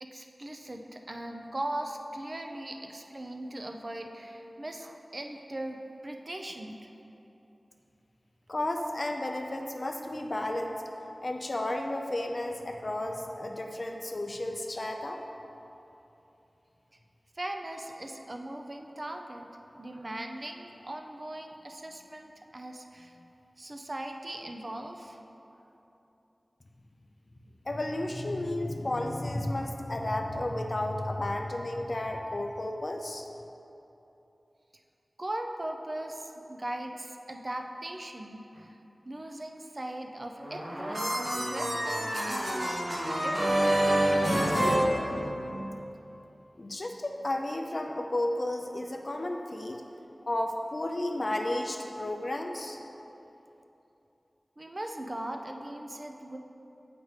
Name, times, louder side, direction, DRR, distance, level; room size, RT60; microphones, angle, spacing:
voice 1, 0.0-6.8 17.4-19.5 19.8-23.3 23.6-25.2 35.2-38.8 39.1-44.6 54.6-56.4, right 1 dB, 45° right, 3 dB, 0.4 m, -39 dB
voice 2, 8.5-10.8 11.2-15.2 27.7-33.2 46.6-49.8 50.3-52.8, left 1 dB, 50° left, 3 dB, 0.4 m, -32 dB
Funny TV Moment, 40.4-45.7, right 1 dB, 80° right, 1.0 m, -27 dB
7.9 x 5.1 x 3.2 m, 3.0 s
wide cardioid pair, 55°, 0 cm